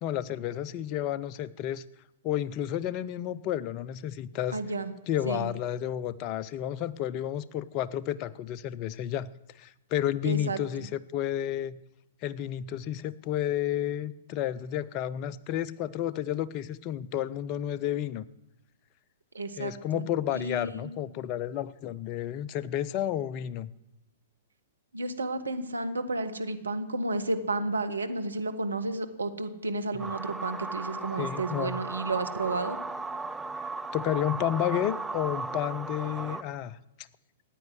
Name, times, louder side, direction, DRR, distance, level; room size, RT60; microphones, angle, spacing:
voice 1, 0.0-1.8 2.2-4.6 5.1-9.3 9.6-11.8 12.2-18.3 19.6-23.7 31.2-31.8 33.9-36.8, left 11 dB, 35° left, 17 dB, 0.7 m, -31 dB
voice 2, 4.5-4.9 5.2-5.5 10.2-10.9 19.3-20.1 20.3-20.9 24.9-32.8, right 2 dB, 80° right, 9 dB, 1.5 m, -32 dB
sound 1, 30.0-36.4, right 3 dB, 5° right, 0.6 m, -36 dB
15.0 x 9.3 x 9.5 m, 0.95 s
figure-of-eight pair, 110°, 0 cm